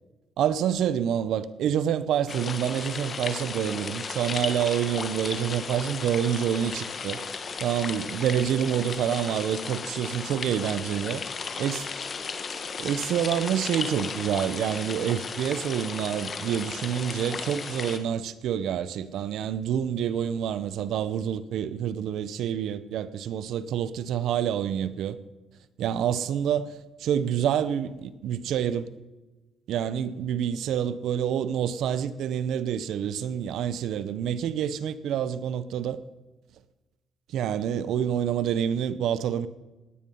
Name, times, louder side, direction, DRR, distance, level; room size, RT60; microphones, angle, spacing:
voice 1, 0.4-7.2 7.6-11.2 11.6-11.8 12.8-25.2 25.8-28.9 29.7-36.0 37.3-39.5, right 9 dB, 80° right, 0.8 m, -27 dB
sound 1, 2.3-18.0, left 5 dB, 45° left, 1.4 m, -35 dB
19.0 x 9.3 x 5.5 m
cardioid pair, 90°, 0 cm